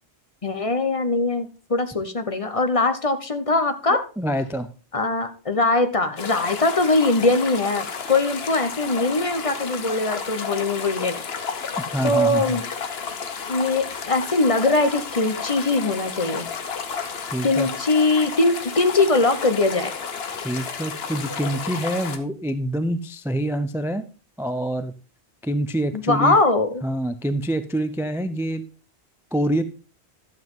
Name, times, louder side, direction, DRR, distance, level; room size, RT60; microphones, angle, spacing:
voice 1, 0.4-4.0 4.9-11.2 12.0-12.6 13.5-16.5 17.4-19.9 25.9-26.7, left 2 dB, 35° left, 9 dB, 0.9 m, -21 dB
voice 2, 3.9-4.7 11.9-12.6 17.3-17.7 20.3-24.0 24.4-24.9 25.4-26.4 26.8-28.6 29.3-29.6, right 1 dB, 5° right, 10 dB, 0.4 m, -26 dB
sound 1, 6.2-22.2, left 6 dB, 65° left, 1.2 m, -32 dB
12.0 x 7.6 x 3.7 m, 0.35 s
omnidirectional pair, 1.1 m